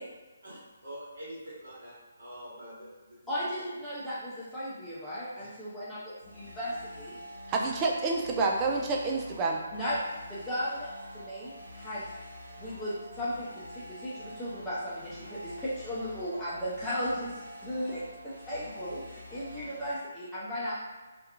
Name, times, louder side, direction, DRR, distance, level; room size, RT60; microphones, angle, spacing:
voice 1, 0.4-3.2 5.3-5.5 7.4-7.5, equal, 60° right, -10 dB, 1.1 m, -45 dB
voice 2, 3.3-6.0 6.3-7.1 9.7-10.0 10.3-10.9 11.1-11.5 11.7-12.0 12.6-17.3 17.6-18.0 18.5-20.8, equal, 10° left, -11 dB, 0.7 m, -35 dB
sound 1, 6.2-19.9, equal, 85° right, 0.6 m, -46 dB
voice 3, 7.5-9.6, right 3 dB, 20° right, 0 dB, 0.3 m, -28 dB
2.8 x 2.3 x 2.3 m, 1.2 s
figure-of-eight pair, 140°, 0 cm